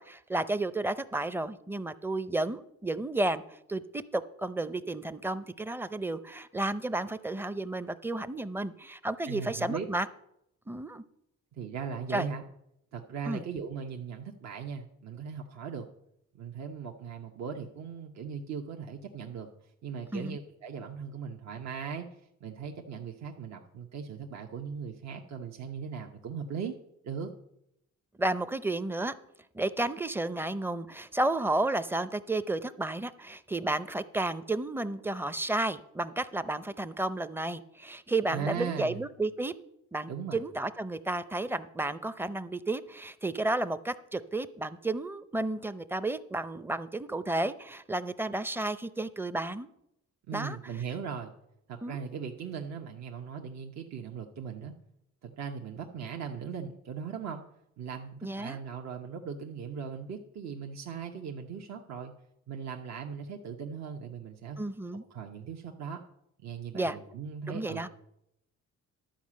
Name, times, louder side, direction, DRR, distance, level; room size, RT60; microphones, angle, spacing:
voice 1, 0.0-3.4 3.7-10.1 10.7-11.0 12.1-12.3 13.3-13.4 20.1-20.4 28.2-29.2 29.5-39.5 39.9-49.7 50.3-50.6 51.8-52.0 58.2-58.6 64.6-65.0 66.7-67.0 67.5-67.9, right 2 dB, 5° right, 13 dB, 0.5 m, -32 dB
voice 2, 9.3-9.8 11.6-12.4 12.9-15.9 16.3-19.5 19.8-22.1 22.4-26.8 27.0-27.3 38.3-39.0 40.1-40.4 50.3-51.3 51.7-54.7 55.2-57.4 57.8-62.1 62.5-64.6 65.1-66.0 66.4-67.9, right 6 dB, 60° right, 2 dB, 0.9 m, -38 dB
11.5 x 5.0 x 7.4 m, 0.80 s
cardioid pair, 90°, 30 cm